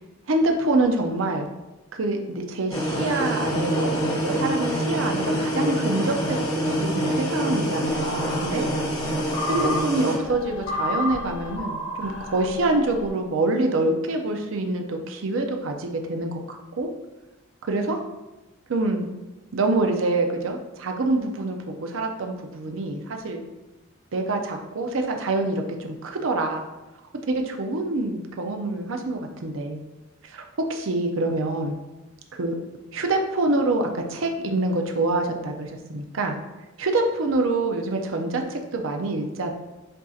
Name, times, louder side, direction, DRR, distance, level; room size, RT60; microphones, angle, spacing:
voice 1, 0.3-1.5 1.9-8.7 9.5-16.9 17.7-18.0 18.7-19.1 19.5-23.4 24.1-26.6 27.3-29.8 30.2-30.4 30.7-31.7 32.4-32.5 32.9-36.4 36.8-39.5, right 2 dB, 70° right, 4 dB, 0.6 m, -26 dB
sound 1, 2.7-10.1, equal, 20° left, 1.3 m, -26 dB
sound 2, 7.9-13.1, left 1 dB, 55° left, 1.2 m, -32 dB
7.6 x 2.7 x 2.4 m, 1.0 s
head